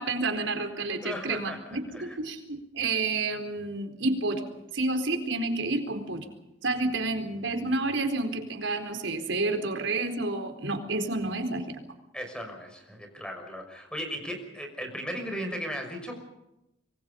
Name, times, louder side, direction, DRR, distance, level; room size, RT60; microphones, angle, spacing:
voice 1, 0.0-6.3 6.6-11.8, right 2 dB, 75° right, 6 dB, 4.3 m, -30 dB
voice 2, 1.0-2.2 12.1-16.2, equal, 5° left, 3 dB, 6.1 m, -37 dB
26.5 x 23.5 x 5.4 m, 0.90 s
head